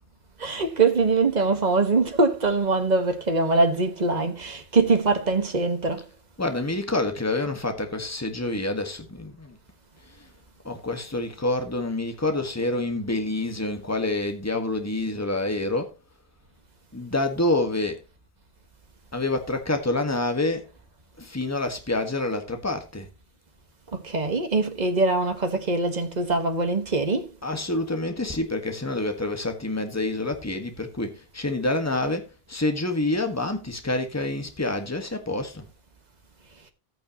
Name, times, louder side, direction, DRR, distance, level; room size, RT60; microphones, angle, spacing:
voice 1, 0.4-6.1 23.9-27.3, right 3 dB, 45° right, 1.6 m, -23 dB
voice 2, 6.4-9.6 10.0-10.3 10.6-15.9 16.9-18.0 19.1-20.7 21.2-23.1 27.4-35.7, left 2 dB, 15° left, 1.6 m, -27 dB
14.0 x 8.9 x 3.0 m
omnidirectional pair, 1.0 m